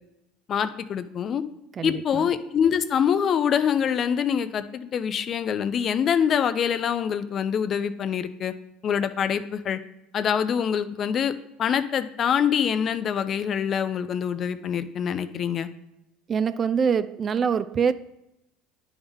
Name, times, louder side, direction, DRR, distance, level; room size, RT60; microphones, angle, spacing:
voice 1, 0.5-1.4 1.8-8.5 8.8-9.8 10.1-11.3 11.6-15.7, left 8 dB, 45° left, 0.4 m, -25 dB
voice 2, 1.7-2.3 16.3-17.9, right 6 dB, 35° right, 0.3 m, -24 dB
10.5 x 3.6 x 3.5 m
supercardioid pair, 90°, 0 cm